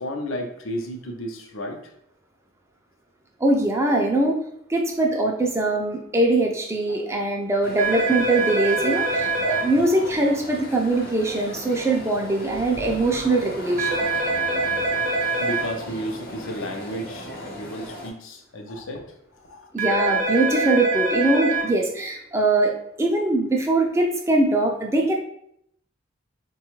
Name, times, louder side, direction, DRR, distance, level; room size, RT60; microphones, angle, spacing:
voice 1, 0.0-1.8 6.9-7.0 15.4-19.7, equal, 80° left, 3 dB, 0.6 m, -33 dB
voice 2, 3.4-4.4 4.7-14.1 19.7-25.1, right 2 dB, 15° right, 1 dB, 0.3 m, -22 dB
sound 1, 7.6-18.1, equal, 45° left, 0.7 m, -37 dB
sound 2, 7.8-9.6 13.8-15.6 19.8-21.6, right 3 dB, 40° right, 0.7 m, -24 dB
4.1 x 2.3 x 3.0 m, 0.73 s
head